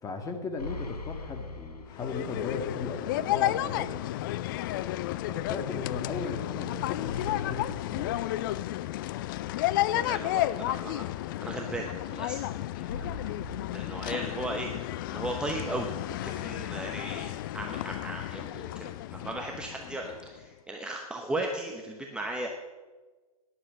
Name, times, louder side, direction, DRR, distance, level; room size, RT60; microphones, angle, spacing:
voice 1, 0.0-3.9 5.3-7.1 7.4-8.2, left 3 dB, 15° left, 4 dB, 1.7 m, -37 dB
sound 1, 0.6-2.6 2.9-3.0 7.0-9.0 12.9-14.8, left 3 dB, 80° left, 1.7 m, -42 dB
sound 2, 1.9-20.4, left 15 dB, 35° left, 0.4 m, -32 dB
voice 2, 9.9-11.0 11.4-13.3 13.7-14.7 15.1-22.5, right 2 dB, 5° right, 1 dB, 0.9 m, -36 dB
12.5 x 10.5 x 6.4 m, 1.3 s
figure-of-eight pair, 120°, 20 cm